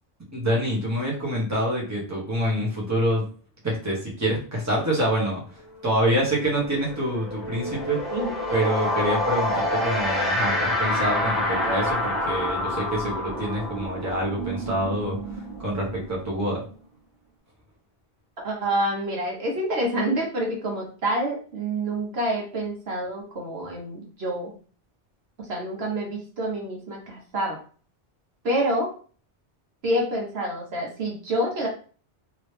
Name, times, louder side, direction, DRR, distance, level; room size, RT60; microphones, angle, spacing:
voice 1, 0.3-3.2 3.6-8.1 8.5-16.6, equal, 15° right, -4 dB, 1.2 m, -26 dB
sound 1, 5.7-5.9 6.2-16.7, left 1 dB, ahead, 1.0 m, -28 dB
voice 2, 8.1-8.7 18.4-24.5 25.4-27.6 28.4-28.9 29.8-31.7, right 1 dB, 65° right, 0 dB, 1.2 m, -27 dB
3.0 x 2.9 x 3.3 m, 0.40 s
omnidirectional pair, 1.1 m